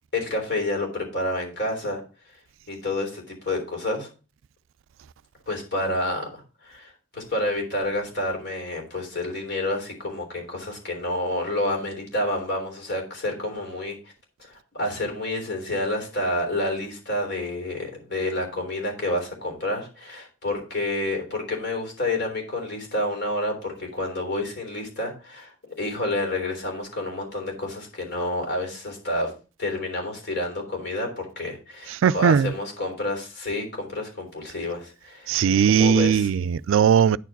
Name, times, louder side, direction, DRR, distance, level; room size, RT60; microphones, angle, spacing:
voice 1, 0.1-2.0 2.7-4.1 5.5-14.0 14.4-29.3 29.6-35.4 35.7-36.3, left 1 dB, 55° left, 3.6 m, -29 dB
voice 2, 32.0-32.5 35.3-37.2, right 7 dB, 75° right, 0.3 m, -19 dB
9.9 x 4.7 x 5.8 m
head